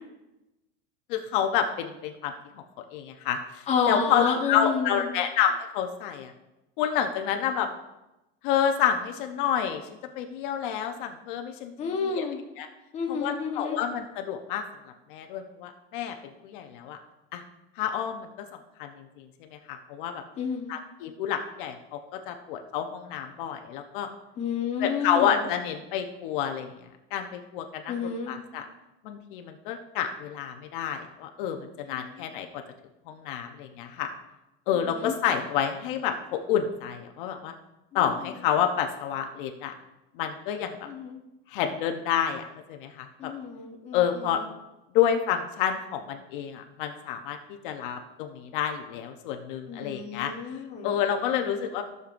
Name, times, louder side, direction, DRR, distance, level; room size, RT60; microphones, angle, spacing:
voice 1, 1.1-2.3 2.9-6.3 6.8-7.7 8.4-12.2 12.6-12.7 13.1-14.6 15.1-16.1 16.4-17.0 17.3-17.4 17.8-18.5 18.8-19.2 19.5-20.2 20.7-22.0 22.3-24.1 24.8-26.7 27.1-28.0 28.3-28.6 29.0-32.6 33.1-34.1 34.7-37.5 37.9-39.7 40.2-40.7 41.5-42.4 42.7-43.3 43.9-44.4 44.9-50.3 50.8-51.8, left 9 dB, 60° left, 5 dB, 0.8 m, -29 dB
voice 2, 3.7-5.1 11.8-12.4 12.9-13.8 20.4-20.8 24.4-25.4 27.9-28.3 31.8-32.3 34.9-35.1 37.9-38.2 40.9-41.2 43.2-44.4 49.7-50.9, left 6 dB, 20° left, 0 dB, 1.0 m, -30 dB
14.5 x 6.7 x 2.5 m, 0.97 s
supercardioid pair, 170°, 29 cm